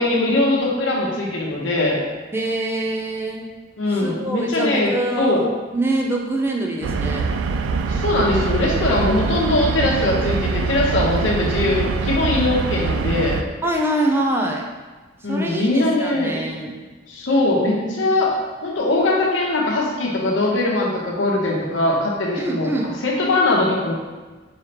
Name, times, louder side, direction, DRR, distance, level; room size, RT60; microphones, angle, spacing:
voice 1, 0.0-2.0 3.8-4.9 5.2-5.4 7.9-13.4 15.2-16.4 17.1-18.3 18.6-22.7 23.0-23.9, left 2 dB, 80° left, -2 dB, 0.9 m, -21 dB
voice 2, 2.3-3.5 3.9-7.3 13.6-14.7 15.3-16.8 22.4-22.9, right 1 dB, 10° right, 0 dB, 0.4 m, -24 dB
sound 1, 6.8-13.4, right 4 dB, 85° right, 0.3 m, -23 dB
4.8 x 3.2 x 2.9 m, 1.3 s
head